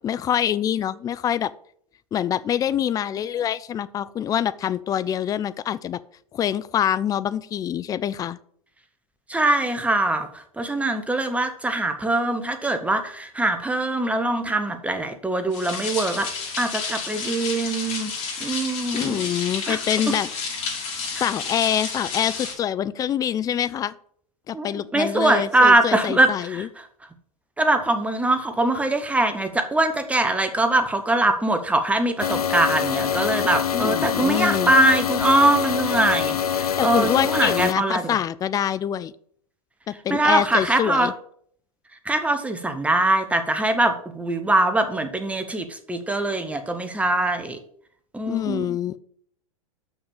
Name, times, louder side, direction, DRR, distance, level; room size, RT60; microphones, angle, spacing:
voice 1, 0.0-1.5 2.1-6.0 6.3-8.4 18.9-20.3 21.1-23.9 24.5-26.7 33.7-34.7 36.8-39.1 39.9-41.1 48.3-49.0, left 10 dB, 20° left, 16 dB, 0.4 m, -25 dB
voice 2, 9.3-16.3 16.6-18.1 18.4-19.2 19.7-19.8 24.5-26.7 27.6-38.1 40.1-41.1 42.0-47.6 48.1-48.8, right 2 dB, 5° right, 7 dB, 1.1 m, -22 dB
sound 1, 15.5-22.5, left 5 dB, 40° left, 4.2 m, -31 dB
sound 2, 32.2-37.7, left 8 dB, 85° left, 0.6 m, -25 dB
6.4 x 6.2 x 7.1 m, 0.62 s
hypercardioid pair, 100°, 19 cm